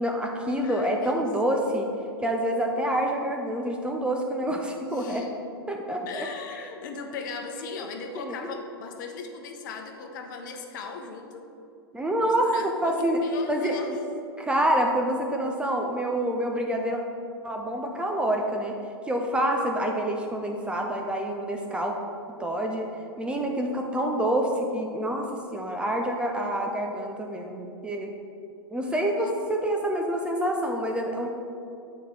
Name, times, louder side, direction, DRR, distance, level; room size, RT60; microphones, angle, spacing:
voice 1, 0.0-1.9 2.2-5.3 5.7-6.3 7.6-7.9 8.2-8.6 11.9-13.2 13.5-14.0 14.4-17.0 17.4-18.8 19.1-22.0 22.4-22.9 23.2-28.1 28.7-31.3, right 1 dB, 10° right, 1 dB, 0.5 m, -27 dB
voice 2, 0.6-1.3 4.9-5.3 6.1-11.4 12.2-14.0 29.2-29.3, left 5 dB, 50° left, 4 dB, 0.9 m, -38 dB
9.0 x 4.4 x 4.7 m, 2.6 s
figure-of-eight pair, 100°, 13 cm